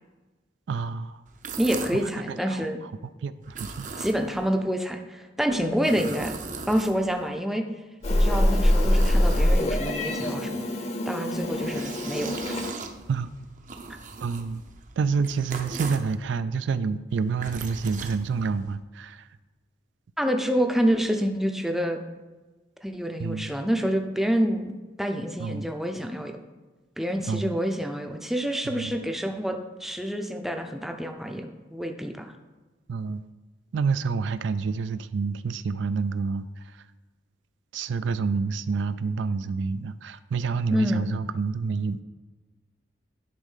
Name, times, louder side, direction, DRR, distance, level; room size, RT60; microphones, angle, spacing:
voice 1, 0.7-1.2 2.0-2.7 3.2-3.9 13.1-13.3 14.2-14.6 15.0-19.3 23.2-23.5 25.4-25.7 27.3-27.5 28.7-28.9 32.9-33.2 33.7-36.5 37.7-42.0, right 5 dB, 75° right, 13 dB, 0.3 m, -28 dB
sound 1, 1.3-2.1 3.4-4.5 5.5-7.3 8.0-9.9 11.3-16.2 17.1-18.8, right 4 dB, 40° right, 0.7 m, -39 dB
voice 2, 1.6-2.8 4.0-6.3 6.7-7.6 8.1-10.7 11.1-12.6 20.2-22.0 22.8-26.4 27.0-32.3 40.7-41.1, equal, ahead, 4 dB, 0.5 m, -27 dB
Meow, 8.0-12.7, left 1 dB, 35° left, 0.8 m, -24 dB
10.5 x 3.6 x 5.5 m, 1.2 s
head